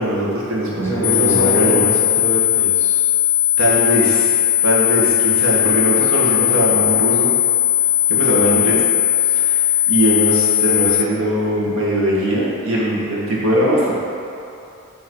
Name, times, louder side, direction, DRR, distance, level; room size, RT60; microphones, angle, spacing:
voice 1, 0.0-1.8 3.6-4.3 4.6-7.3 8.1-8.8 9.2-13.9, equal, 70° right, -6 dB, 1.4 m, -20 dB
voice 2, 0.7-3.0, left 1 dB, 10° left, -5 dB, 0.7 m, -25 dB
sound 1, 1.0-11.0, left 12 dB, 85° left, 0.4 m, -17 dB
7.5 x 3.1 x 4.6 m, 2.8 s
head